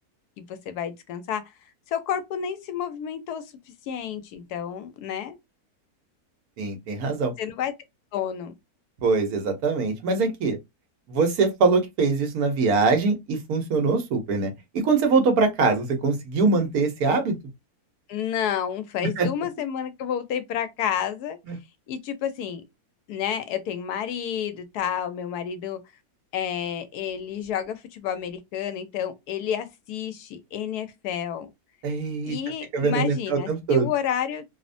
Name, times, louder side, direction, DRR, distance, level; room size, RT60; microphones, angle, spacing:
voice 1, 0.4-1.4 1.9-3.4 3.9-5.4 7.4-7.7 8.1-8.5 18.1-21.4 21.9-22.6 23.1-25.8 26.3-31.5 32.2-34.4, left 9 dB, 90° left, 1.2 m, -30 dB
voice 2, 6.6-7.3 9.0-10.6 11.1-17.4 19.2-19.3 21.5-21.6 31.8-32.4 32.7-33.9, right 4 dB, 75° right, 1.3 m, -23 dB
3.0 x 2.1 x 2.5 m
omnidirectional pair, 1.6 m